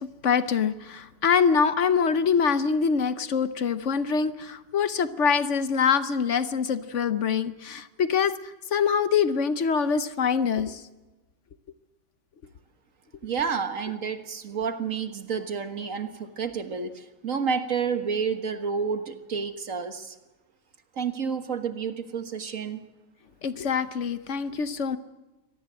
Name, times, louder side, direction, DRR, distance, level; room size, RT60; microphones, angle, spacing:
voice 1, 0.0-8.3 8.7-10.8 23.4-25.0, left 6 dB, 60° left, 12 dB, 1.2 m, -24 dB
voice 2, 13.2-20.2 21.0-22.8, right 6 dB, 70° right, 8 dB, 1.9 m, -30 dB
25.0 x 18.0 x 7.7 m, 1.1 s
omnidirectional pair, 1.5 m